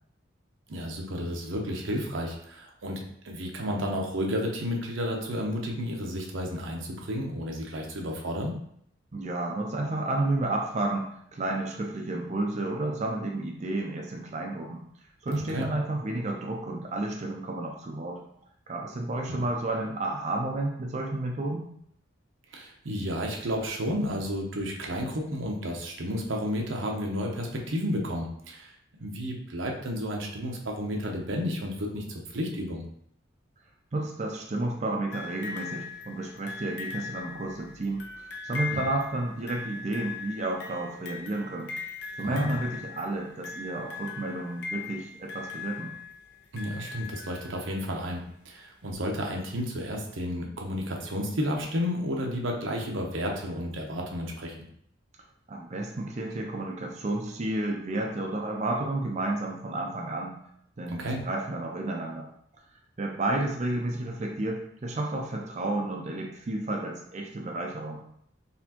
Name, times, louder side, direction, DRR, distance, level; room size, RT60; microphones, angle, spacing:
voice 1, 0.7-8.5 15.3-15.7 19.3-19.4 22.5-28.7 29.0-32.8 42.2-42.5 46.5-54.6 60.9-61.2, equal, 80° right, 1 dB, 0.8 m, -32 dB
voice 2, 9.1-14.8 15.2-18.2 18.7-21.7 33.9-41.7 42.2-45.9 55.5-60.4 60.8-62.3 63.0-68.0, right 2 dB, 35° right, 0 dB, 0.5 m, -31 dB
sound 1, 35.1-47.9 48.9-49.0, left 4 dB, 60° left, 0.6 m, -40 dB
4.2 x 3.4 x 2.9 m, 0.70 s
head